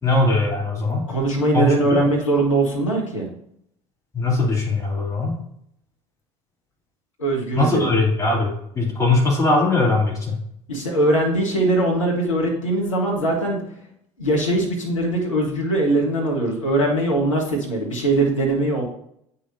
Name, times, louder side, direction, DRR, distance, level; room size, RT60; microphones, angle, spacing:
voice 1, 0.0-1.1 1.5-2.0 4.1-5.4 7.6-10.4, left 2 dB, 20° left, -4 dB, 2.9 m, -20 dB
voice 2, 1.1-3.3 7.2-7.9 10.7-13.6 14.2-18.8, right 2 dB, 80° left, -1 dB, 1.4 m, -21 dB
8.1 x 5.6 x 2.7 m, 0.72 s
figure-of-eight pair, 65°, 16 cm